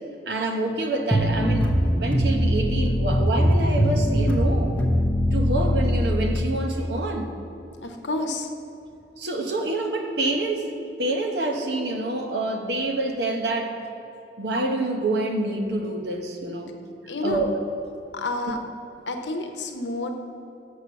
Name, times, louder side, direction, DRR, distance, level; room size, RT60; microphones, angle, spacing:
voice 1, 0.3-4.8 5.3-7.3 8.2-8.3 9.2-13.7 14.4-16.7 17.2-17.6, right 2 dB, 65° right, 3 dB, 1.0 m, -27 dB
sound 1, 1.1-6.4, equal, 5° left, 0.8 m, -21 dB
voice 2, 7.8-8.5 17.1-17.4 18.1-18.6 19.1-20.1, left 2 dB, 85° left, 4 dB, 0.9 m, -29 dB
6.6 x 6.1 x 6.8 m, 2.8 s
head